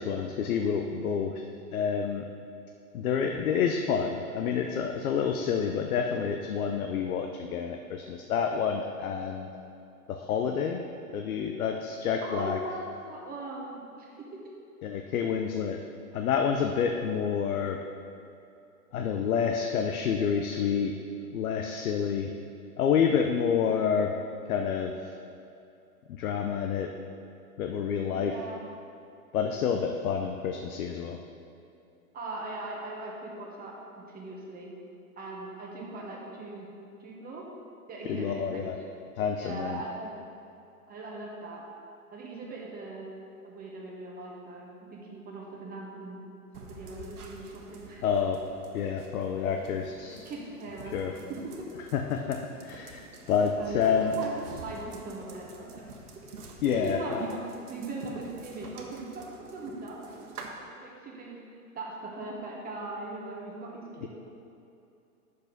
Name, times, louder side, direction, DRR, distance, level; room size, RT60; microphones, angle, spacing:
voice 1, 0.0-1.3 1.7-2.2 2.9-9.5 10.1-10.8 11.1-12.6 14.8-15.8 16.1-17.8 18.9-20.9 21.3-22.3 22.8-24.1 24.5-25.1 26.1-26.9 27.6-28.4 29.3-31.2 38.1-38.8 39.2-39.8 48.0-48.4 48.7-50.3 50.9-51.1 51.9-54.2 56.6-57.2 64.0-64.1, left 7 dB, 70° left, 4 dB, 0.8 m, -28 dB
voice 2, 12.2-14.4 28.1-28.7 32.1-34.7 35.2-36.7 37.0-37.4 37.9-38.6 39.4-40.1 40.9-41.6 42.1-43.1 43.4-46.2 46.5-48.0 49.4-49.5 50.2-51.2 51.6-51.7 52.9-53.0 53.6-53.8 54.2-55.9 56.4-60.3 60.7-61.3 61.7-64.1, right 2 dB, 20° right, -3 dB, 1.3 m, -40 dB
sound 1, 46.5-60.5, right 3 dB, 80° right, 1.4 m, -48 dB
8.2 x 6.8 x 5.2 m, 2.7 s
hypercardioid pair, 120°, 45 cm